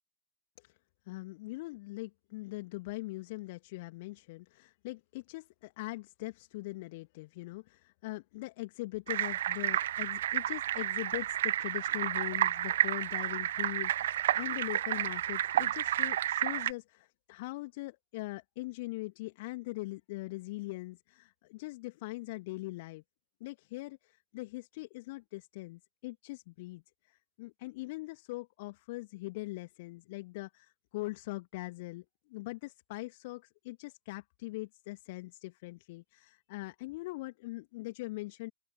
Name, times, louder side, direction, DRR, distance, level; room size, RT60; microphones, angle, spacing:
voice 1, 1.1-23.0 23.4-38.5, left 21 dB, 50° left, 2.5 m, -41 dB
sound 1, 9.1-16.7, right 12 dB, 60° right, 0.6 m, -31 dB
open air
figure-of-eight pair, 90°, 0 cm